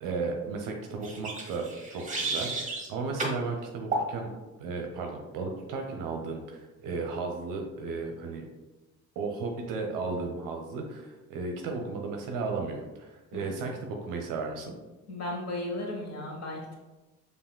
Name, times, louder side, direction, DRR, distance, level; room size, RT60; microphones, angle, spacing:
voice 1, 0.0-4.3 4.6-8.4 9.2-14.7, right 4 dB, 50° right, 2 dB, 0.7 m, -34 dB
sound 1, 1.0-2.9 3.2-3.4 3.9-4.1, right 2 dB, 20° right, 1.0 m, -32 dB
voice 2, 15.1-16.6, left 1 dB, 40° left, 0 dB, 1.2 m, -35 dB
6.9 x 2.5 x 2.2 m, 1.1 s
figure-of-eight pair, 50°, 42 cm